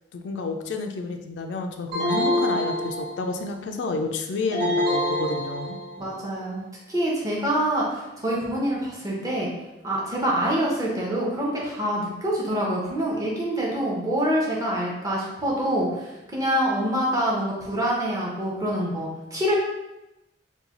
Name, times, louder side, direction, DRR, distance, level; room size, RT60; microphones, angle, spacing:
voice 1, 0.1-5.8, left 3 dB, 80° left, 5 dB, 0.4 m, -30 dB
sound 1, 1.9-3.5 4.5-6.1, left 1 dB, 75° right, 1.2 m, -26 dB
voice 2, 6.0-6.6 6.9-9.5 9.8-19.6, equal, 20° right, -4 dB, 0.7 m, -26 dB
3.1 x 2.2 x 3.7 m, 0.96 s
head